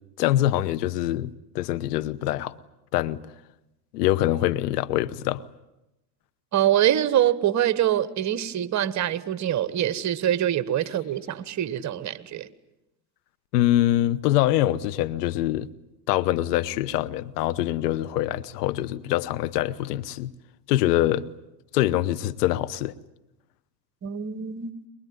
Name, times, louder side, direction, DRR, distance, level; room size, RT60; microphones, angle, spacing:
voice 1, 0.2-2.5 2.9-3.2 3.9-5.4 13.5-15.7 16.1-20.3 20.7-21.3 21.7-22.9, left 14 dB, 75° left, 1.1 m, -24 dB
voice 2, 6.5-12.5 24.0-24.7, right 11 dB, 35° right, 1.5 m, -24 dB
23.5 x 22.0 x 9.6 m
hypercardioid pair, 90°, 49 cm